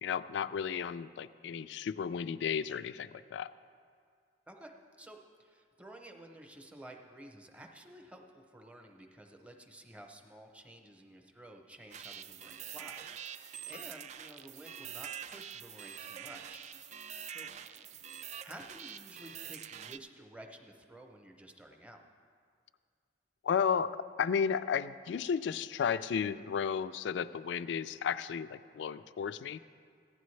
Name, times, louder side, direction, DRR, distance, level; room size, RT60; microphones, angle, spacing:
voice 1, 0.0-3.5 23.4-23.9 24.2-29.6, left 7 dB, 75° left, 14 dB, 0.3 m, -33 dB
voice 2, 4.5-16.7 17.0-17.5 18.4-22.0, right 1 dB, 5° right, 3 dB, 0.7 m, -52 dB
sound 1, 11.9-20.0, right 9 dB, 40° right, 0.3 m, -45 dB
15.5 x 10.0 x 3.2 m, 2.1 s
head